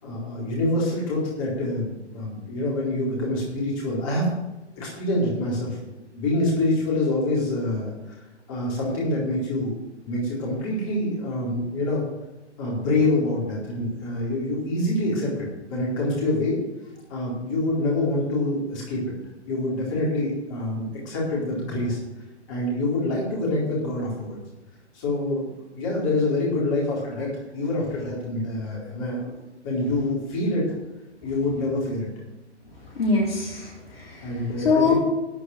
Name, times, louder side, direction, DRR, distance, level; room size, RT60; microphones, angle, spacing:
voice 1, 0.0-4.3 4.8-5.8 6.1-8.2 8.5-12.0 12.6-16.6 17.1-19.1 19.5-22.0 22.5-24.4 24.9-29.3 29.6-30.7 31.2-32.1 34.2-35.0, left 2 dB, 30° left, -4 dB, 4.2 m, -26 dB
voice 2, 33.0-34.3 34.6-35.0, left 4 dB, 55° left, -2 dB, 3.9 m, -23 dB
12.5 x 6.3 x 7.4 m, 1.0 s
figure-of-eight pair, 130°, 35 cm